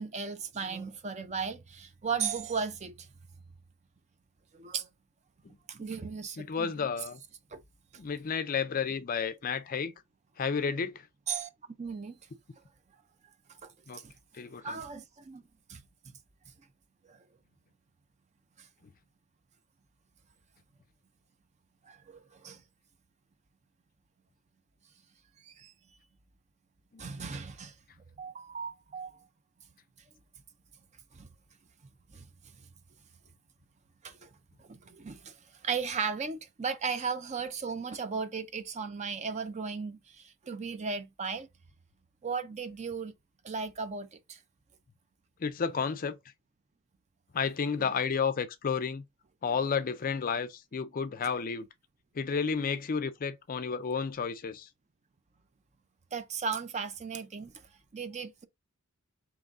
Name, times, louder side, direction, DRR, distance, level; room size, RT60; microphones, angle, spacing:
voice 1, 0.0-3.1 4.5-4.9 5.7-6.9 7.5-7.6 11.3-11.5 11.8-12.2 13.6-13.7 14.0-14.1 14.6-15.4 15.7-15.8 17.0-17.2 21.9-22.6 25.4-25.7 27.0-27.7 28.2-29.2 31.1-31.3 32.1-32.2 34.0-34.3 34.7-35.3 35.6-41.5 42.2-43.1 43.4-44.4 56.1-57.5 57.9-58.4, right 5 dB, 30° right, 0.5 m, -36 dB
voice 2, 6.4-7.2 8.0-9.9 10.4-11.1 13.9-14.0 14.3-14.8 26.9-27.0 45.4-46.2 47.3-49.0 49.4-51.7 52.1-54.7, left 6 dB, 40° left, 0.4 m, -31 dB
3.9 x 3.0 x 3.5 m
head